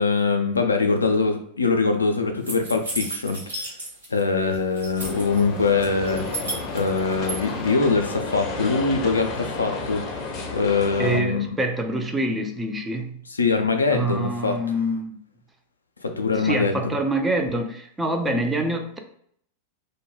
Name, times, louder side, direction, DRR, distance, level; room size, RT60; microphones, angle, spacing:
voice 1, 0.0-3.7 4.1-6.3 6.7-11.5 13.3-14.6 16.0-16.8, left 4 dB, 75° left, 5 dB, 0.3 m, -23 dB
sound 1, 2.4-4.2 4.5-5.4 5.8-7.4, right 1 dB, 80° right, 1.1 m, -33 dB
sound 2, 5.0-11.2, left 3 dB, 35° left, 0.6 m, -32 dB
voice 2, 11.0-13.1 13.9-15.2 16.4-19.0, right 1 dB, 10° right, 4 dB, 0.3 m, -26 dB
2.2 x 2.1 x 3.1 m, 0.65 s
figure-of-eight pair, 90°, 0 cm